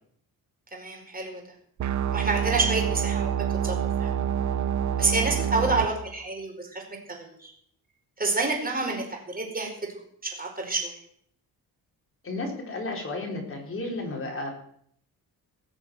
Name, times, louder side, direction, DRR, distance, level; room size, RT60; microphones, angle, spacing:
voice 1, 0.7-1.4 2.1-3.3 3.6-4.1 5.0-6.8 7.2-7.5 8.2-9.7 10.2-10.9, right 3 dB, 20° right, 1 dB, 4.6 m, -28 dB
sound 1, 1.8-5.8, right 9 dB, 50° right, 0.9 m, -27 dB
voice 2, 12.2-14.5, left 2 dB, 35° left, 0 dB, 4.6 m, -33 dB
18.5 x 6.9 x 7.8 m, 0.66 s
cardioid pair, 125°, 38 cm